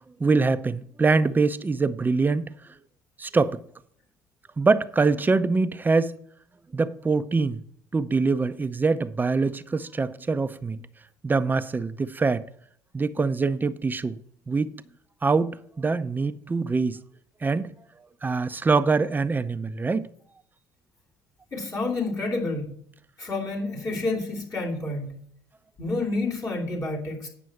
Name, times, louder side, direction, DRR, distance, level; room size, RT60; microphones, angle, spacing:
voice 1, 0.2-2.4 3.2-3.6 4.6-6.1 6.7-7.6 7.9-10.8 11.2-12.4 12.9-14.2 14.5-14.7 15.2-17.0 17.4-17.7 18.2-20.1, right 4 dB, 20° right, 0.7 m, -24 dB
voice 2, 21.5-22.7 23.2-25.2 25.8-27.3, left 2 dB, 40° left, 2.8 m, -29 dB
9.3 x 6.1 x 5.9 m
hypercardioid pair, 65°, 9 cm